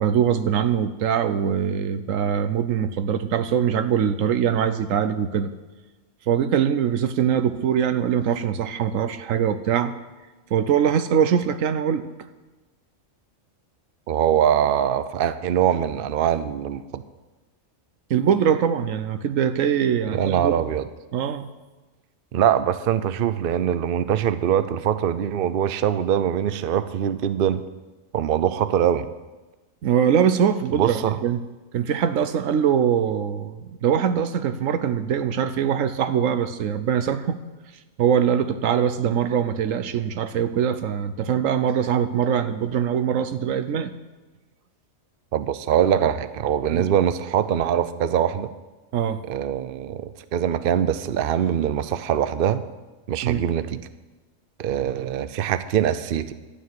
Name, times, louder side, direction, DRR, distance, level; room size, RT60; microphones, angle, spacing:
voice 1, 0.0-5.5 6.3-10.0 10.5-12.0 18.1-20.5 21.1-21.5 29.8-31.4 31.7-37.4 38.0-43.9 46.7-46.9 48.9-49.2 53.2-53.4, right 8 dB, 85° right, 11 dB, 1.2 m, -22 dB
voice 2, 14.1-17.0 20.1-20.9 22.3-27.6 28.1-29.1 30.7-31.2 45.3-48.5 49.3-52.6 53.1-53.8 54.6-56.3, right 9 dB, 55° right, 13 dB, 0.7 m, -23 dB
12.0 x 6.7 x 9.4 m, 1.2 s
omnidirectional pair, 1.3 m